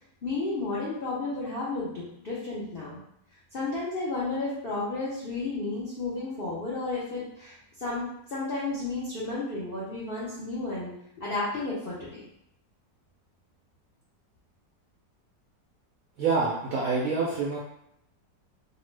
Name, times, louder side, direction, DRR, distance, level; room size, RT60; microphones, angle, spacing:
voice 1, 0.2-3.0 3.5-12.3, left 3 dB, 75° left, -8 dB, 0.5 m, -32 dB
voice 2, 16.2-17.6, right 4 dB, 75° right, -4 dB, 0.8 m, -26 dB
2.8 x 2.1 x 3.1 m, 0.76 s
omnidirectional pair, 1.9 m